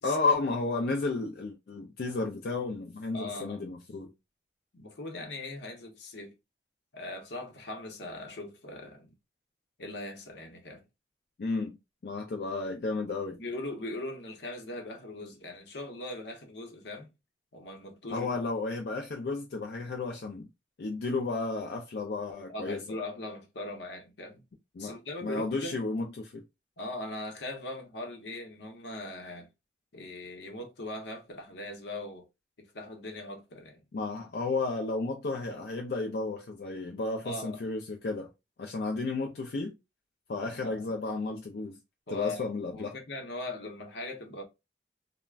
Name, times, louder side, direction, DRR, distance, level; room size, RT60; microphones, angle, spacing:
voice 1, 0.0-4.1 11.4-11.7 12.0-13.4 18.1-20.5 20.8-22.8 24.8-26.4 33.9-38.3 38.6-39.7 40.3-41.8 42.1-42.9, left 3 dB, 60° left, 0.4 m, -32 dB
voice 2, 3.1-3.7 4.7-6.3 6.9-9.1 9.8-10.8 13.4-17.1 17.5-18.4 22.5-24.4 24.8-25.7 26.8-29.5 29.9-32.2 32.7-33.8 37.2-37.6 40.5-40.9 42.1-42.4 42.7-44.4, left 2 dB, 80° left, 0.8 m, -40 dB
2.3 x 2.1 x 3.2 m
head